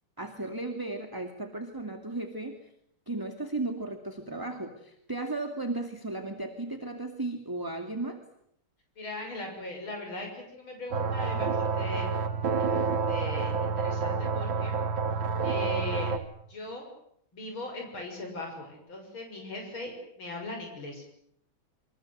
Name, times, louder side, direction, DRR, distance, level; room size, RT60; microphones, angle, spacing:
voice 1, 0.2-2.6 3.1-8.2, right 2 dB, 10° right, 5 dB, 2.4 m, -35 dB
voice 2, 9.0-12.1 12.6-14.7 15.4-16.2 16.5-16.8 17.3-21.0, left 2 dB, 90° left, 2 dB, 7.5 m, -39 dB
sound 1, 10.9-16.2, right 5 dB, 75° right, 2.6 m, -29 dB
28.0 x 25.5 x 8.0 m, 0.71 s
omnidirectional pair, 2.2 m